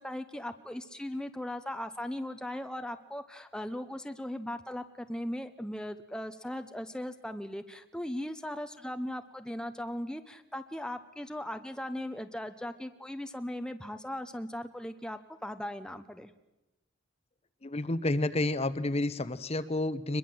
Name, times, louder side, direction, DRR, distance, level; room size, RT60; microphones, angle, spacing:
voice 1, 0.0-16.3, left 1 dB, 5° left, 8 dB, 0.8 m, -38 dB
voice 2, 17.6-20.2, left 2 dB, 30° left, 14 dB, 0.9 m, -30 dB
23.5 x 21.5 x 7.8 m, 0.96 s
head